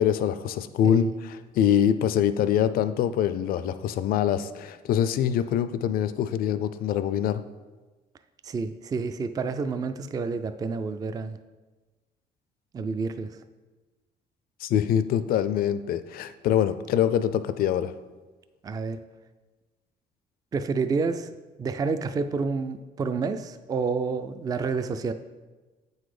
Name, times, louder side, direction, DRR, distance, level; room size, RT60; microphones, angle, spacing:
voice 1, 0.0-7.4 14.6-17.9, left 9 dB, 60° left, 12 dB, 0.4 m, -24 dB
voice 2, 8.4-11.4 12.7-13.3 18.6-19.0 20.5-25.1, right 4 dB, 20° right, 10 dB, 0.3 m, -29 dB
7.6 x 4.0 x 4.9 m, 1.2 s
cardioid pair, 110°, 17 cm